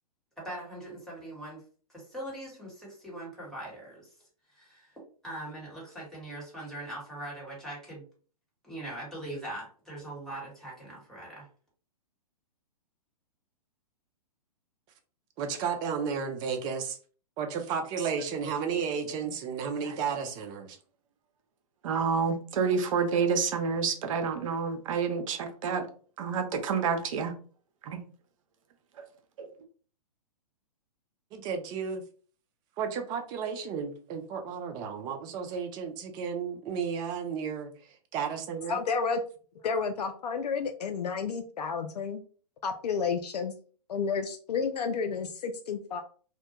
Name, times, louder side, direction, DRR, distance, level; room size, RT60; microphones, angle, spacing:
voice 1, 0.4-1.6 1.9-4.1 4.5-5.0 5.2-8.0 8.6-11.5, right 1 dB, ahead, -6 dB, 1.2 m, -41 dB
voice 2, 15.4-17.0 17.4-20.8 31.3-32.0 32.8-37.7 38.1-38.8, right 6 dB, 20° right, 6 dB, 0.3 m, -33 dB
voice 3, 21.8-25.8 26.2-27.3 27.8-28.0 29.4-29.5, right 5 dB, 55° right, 6 dB, 0.6 m, -28 dB
voice 4, 38.7-39.2 39.6-42.2 42.6-43.5 43.9-46.0, left 5 dB, 80° left, 6 dB, 0.4 m, -31 dB
2.1 x 2.1 x 2.8 m, 0.42 s
hypercardioid pair, 125°, 20 cm